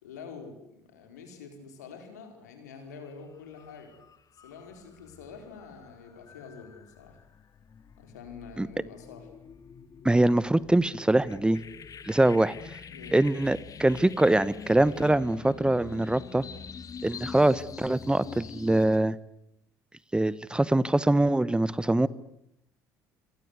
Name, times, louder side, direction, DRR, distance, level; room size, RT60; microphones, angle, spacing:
voice 1, 0.0-3.9 4.3-7.2 8.0-9.3 12.9-13.4, left 5 dB, 85° left, 6 dB, 4.6 m, -46 dB
sound 1, 2.9-3.1 3.5-19.0, left 7 dB, 40° left, 1.9 m, -46 dB
voice 2, 10.0-11.6 12.0-12.6 13.1-16.4 17.0-19.2 20.1-22.1, right 1 dB, 10° right, 19 dB, 1.0 m, -23 dB
27.5 x 23.0 x 8.2 m, 0.81 s
hypercardioid pair, 60°, 9 cm